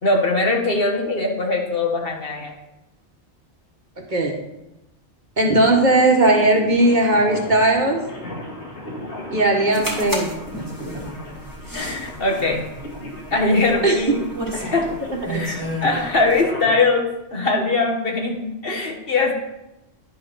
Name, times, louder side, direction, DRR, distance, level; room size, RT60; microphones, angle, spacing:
voice 1, 0.0-2.5 11.7-12.6 13.3-14.2 14.5-14.9 15.3-17.0 17.3-19.3, left 3 dB, 55° left, 0 dB, 1.7 m, -21 dB
voice 2, 5.4-8.0 9.3-10.4 13.8-14.2 15.3-15.4, right 2 dB, 40° right, 1 dB, 1.4 m, -17 dB
sound 1, 5.6-16.7, left 1 dB, 75° left, 2.5 m, -36 dB
sound 2, 9.7-16.4, equal, 15° right, 1.9 m, -32 dB
10.5 x 4.9 x 6.1 m, 0.92 s
omnidirectional pair, 1.2 m